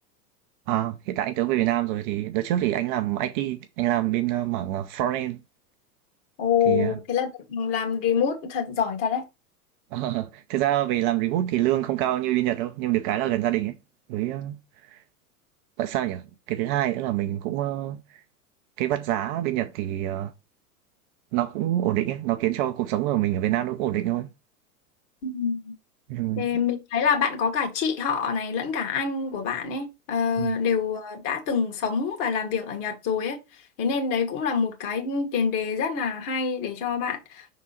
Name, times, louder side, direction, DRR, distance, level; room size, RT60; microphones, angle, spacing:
voice 1, 0.7-5.4 6.7-7.0 9.9-13.8 14.1-14.6 14.9-15.0 15.8-18.2 18.8-20.3 21.3-24.3 26.1-26.5 30.4-30.6, right 14 dB, 35° right, 0.5 m, -26 dB
voice 2, 6.4-9.2 25.2-25.7 26.4-33.4 33.8-37.4, left 6 dB, 45° left, 2.0 m, -26 dB
6.3 x 3.7 x 4.2 m
figure-of-eight pair, 95°, 47 cm